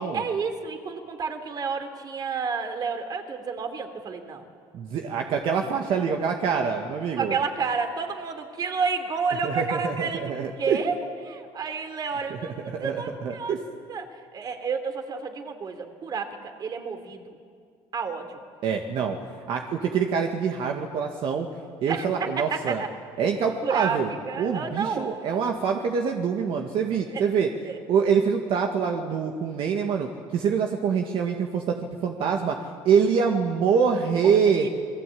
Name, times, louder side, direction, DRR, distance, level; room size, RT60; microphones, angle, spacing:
voice 1, 0.0-4.4 7.2-10.3 10.6-11.0 11.2-13.5 13.9-14.1 14.3-17.4 17.9-18.4 21.9-22.9 23.6-24.0 24.3-25.4 27.1-27.2 27.6-27.8 34.0-34.7, right 5 dB, 40° right, 7 dB, 3.3 m, -30 dB
voice 2, 4.7-7.3 9.4-10.8 12.3-12.4 12.7-13.6 18.6-19.2 19.5-21.5 21.8-22.8 23.2-24.1 24.4-27.5 27.9-34.7, right 6 dB, 60° right, 2 dB, 2.0 m, -25 dB
29.0 x 21.5 x 8.7 m, 2.2 s
cardioid pair, 110°, 10 cm